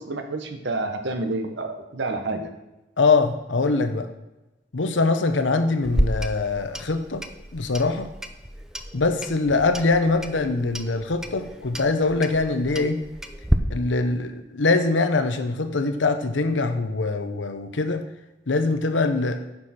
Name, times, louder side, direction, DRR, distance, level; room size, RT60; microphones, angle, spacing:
voice 1, 0.0-2.5, right 2 dB, 65° right, 6 dB, 1.1 m, -29 dB
voice 2, 3.0-4.1 4.7-7.2 7.5-8.1 8.9-13.0 13.7-18.0 18.5-19.4, left 3 dB, 80° left, 8 dB, 0.8 m, -23 dB
Clock, 5.8-13.6, equal, 5° right, 0.5 m, -30 dB
9.8 x 6.3 x 4.3 m, 1.0 s
head